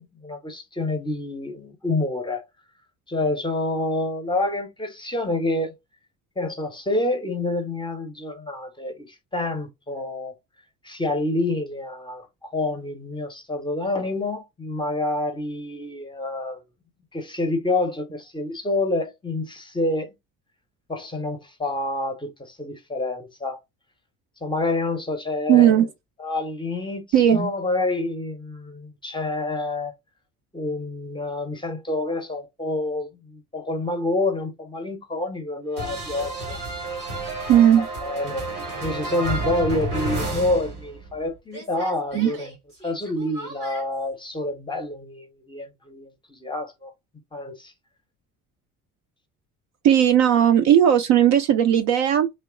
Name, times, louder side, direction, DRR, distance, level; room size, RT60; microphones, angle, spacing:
voice 1, 0.0-2.4 3.1-5.7 6.4-10.3 10.8-16.6 17.1-20.1 20.9-23.6 24.4-25.9 26.2-29.9 30.5-36.6 36.9-37.0 37.8-38.5 38.8-42.5 42.8-46.9 47.3-47.7, left 2 dB, 10° left, 0.7 m, -28 dB
voice 2, 25.5-25.9 27.1-27.5 37.5-37.9 42.1-42.3 49.8-52.3, right 10 dB, 45° right, 0.4 m, -17 dB
sound 1, 35.8-41.2 41.5-43.8, right 2 dB, 90° right, 1.1 m, -31 dB
2.8 x 2.1 x 3.6 m
figure-of-eight pair, 50°, 44 cm